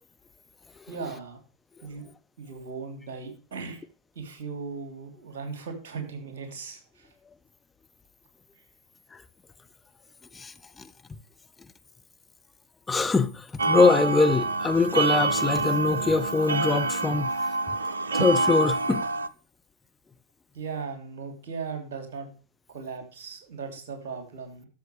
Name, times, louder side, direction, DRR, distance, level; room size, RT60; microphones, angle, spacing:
voice 1, 0.9-1.4 1.8-2.0 2.4-3.9 4.1-7.1 20.5-22.3 22.7-24.7, right 5 dB, 55° right, 3.0 m, -37 dB
voice 2, 10.3-10.9 12.9-17.3 18.1-19.0, left 4 dB, 10° left, 0.6 m, -23 dB
sound 1, 13.6-19.3, right 3 dB, 75° right, 0.5 m, -26 dB
12.5 x 7.2 x 3.2 m
figure-of-eight pair, 90°, 0 cm